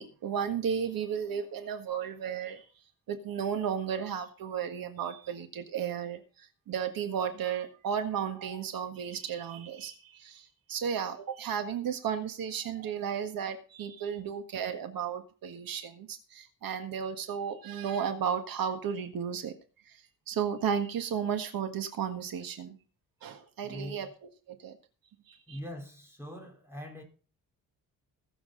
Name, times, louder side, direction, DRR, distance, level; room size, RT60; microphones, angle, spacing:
voice 1, 0.0-2.6 3.1-19.5 19.8-22.8 23.2-24.1 24.5-24.8 25.3-25.6, right 7 dB, 70° right, 1.7 m, -34 dB
voice 2, 23.6-24.1 25.5-27.0, equal, 5° right, 3.5 m, -42 dB
20.5 x 7.3 x 3.9 m
wide cardioid pair, 180°, 36 cm